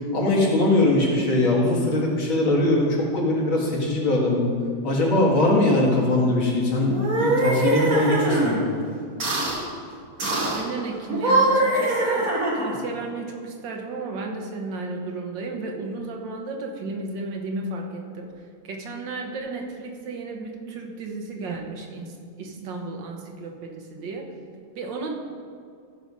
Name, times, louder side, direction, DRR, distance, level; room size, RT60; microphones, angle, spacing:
voice 1, 0.1-4.5 4.8-8.6, left 2 dB, 85° left, -3 dB, 2.7 m, -21 dB
sound 1, 6.9-8.6 9.2-9.6 10.2-10.6 11.1-12.8, right 2 dB, 45° right, 1.8 m, -22 dB
voice 2, 10.2-18.3 18.6-24.3 24.7-25.1, right 3 dB, 70° right, 2 dB, 1.7 m, -33 dB
14.5 x 4.8 x 5.4 m, 2.2 s
omnidirectional pair, 2.1 m